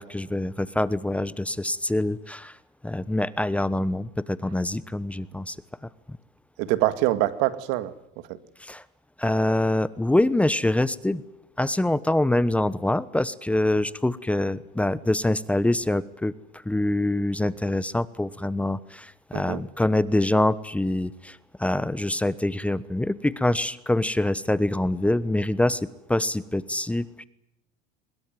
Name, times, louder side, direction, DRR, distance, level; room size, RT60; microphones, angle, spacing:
voice 1, 0.0-2.6 2.8-5.6 8.6-8.8 9.2-11.2 11.6-16.3 16.6-27.2, left 1 dB, 5° left, 17 dB, 1.0 m, -25 dB
voice 2, 6.6-7.9 8.3-8.4 19.3-19.6, right 16 dB, 75° right, 13 dB, 2.0 m, -24 dB
23.5 x 21.5 x 9.2 m, 0.82 s
supercardioid pair, 110°, 20 cm